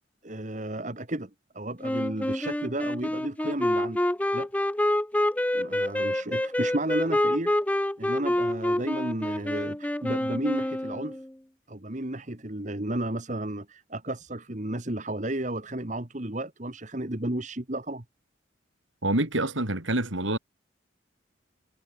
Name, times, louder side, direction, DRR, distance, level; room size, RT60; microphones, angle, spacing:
voice 1, 0.2-4.0 4.3-4.5 5.5-7.6 8.0-11.2 11.7-18.0, right 1 dB, 40° right, 1.7 m, -33 dB
Wind instrument woodwind instrument, 1.8-11.3, left 1 dB, 5° left, 0.5 m, -27 dB
voice 2, 19.0-20.4, right 1 dB, 75° right, 4.3 m, -26 dB
head